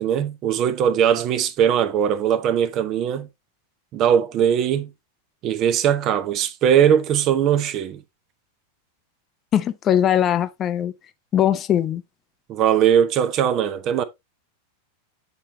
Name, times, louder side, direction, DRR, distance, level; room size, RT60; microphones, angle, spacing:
voice 1, 0.0-3.3 3.9-4.9 5.4-8.0 12.5-14.0, right 9 dB, 35° right, 0.7 m, -20 dB
voice 2, 9.5-10.9 11.3-12.0, left 10 dB, 30° left, 0.5 m, -20 dB
8.3 x 4.4 x 3.0 m
figure-of-eight pair, 90°, 0 cm